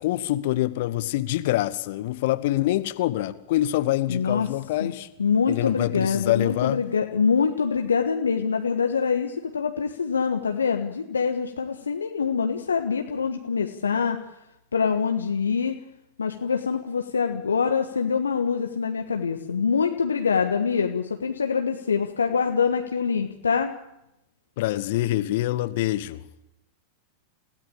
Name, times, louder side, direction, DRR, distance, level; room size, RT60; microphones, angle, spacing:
voice 1, 0.0-5.1 5.5-6.8 24.6-26.2, left 15 dB, 50° left, 1.2 m, -25 dB
voice 2, 4.1-4.5 4.8-4.9 5.2-14.2 14.7-15.8 16.2-23.7, left 6 dB, 75° left, 1.4 m, -25 dB
29.0 x 17.0 x 8.7 m
figure-of-eight pair, 90°, 0 cm